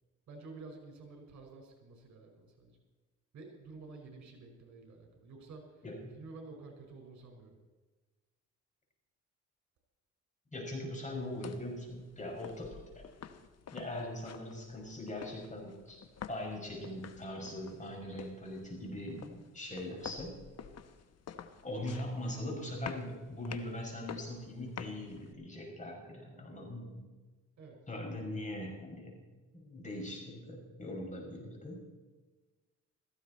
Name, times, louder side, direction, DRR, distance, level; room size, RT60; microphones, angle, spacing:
voice 1, 0.3-2.8 3.3-5.8 6.2-7.5 27.6-27.8 28.2-28.8, right 3 dB, 65° right, 2 dB, 5.3 m, -51 dB
voice 2, 5.8-6.2 10.5-13.0 13.7-16.0 16.3-20.4 21.6-27.0 27.9-29.2 29.5-31.8, left 1 dB, 25° left, 0 dB, 6.2 m, -41 dB
sound 1, 11.1-25.3, left 7 dB, 55° left, 1.2 m, -50 dB
17.0 x 15.0 x 4.3 m, 1.3 s
cardioid pair, 90°, 30 cm